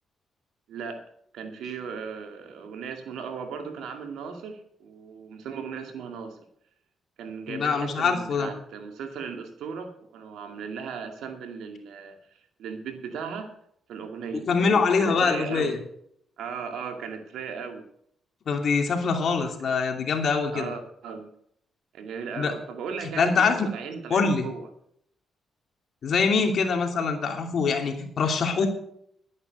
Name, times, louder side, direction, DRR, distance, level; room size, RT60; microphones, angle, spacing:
voice 1, 0.7-1.0 1.3-6.4 7.2-13.5 13.9-15.8 16.4-17.9 19.3-19.7 20.5-21.3 21.9-24.7 27.3-27.4 28.5-28.7, right 6 dB, 85° right, 5 dB, 2.2 m, -37 dB
voice 2, 7.5-8.5 14.3-15.8 18.5-20.7 22.4-22.5 23.2-23.7 24.1-24.4 26.0-28.7, left 5 dB, 60° left, 4 dB, 2.7 m, -24 dB
12.0 x 9.7 x 6.4 m, 0.70 s
cardioid pair, 75°, 0 cm